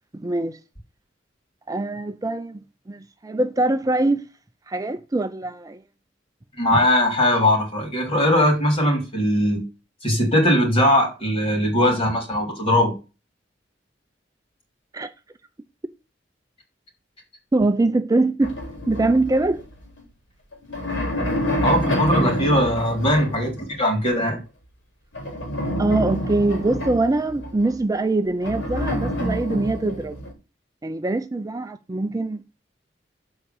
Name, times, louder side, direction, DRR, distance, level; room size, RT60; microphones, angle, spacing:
voice 1, 0.1-0.6 1.7-2.6 2.9-4.3 4.7-5.8 14.9-15.1 17.5-18.6 18.9-19.6 25.8-30.2 30.8-32.4, right 2 dB, 20° right, 0.4 m, -23 dB
voice 2, 6.6-9.6 10.0-13.0 21.6-24.4, left 1 dB, 30° left, 3.7 m, -20 dB
sound 1, 18.4-20.0 20.5-23.6 25.1-27.7 28.4-30.3, equal, 90° left, 3.5 m, -27 dB
7.4 x 4.8 x 7.0 m
head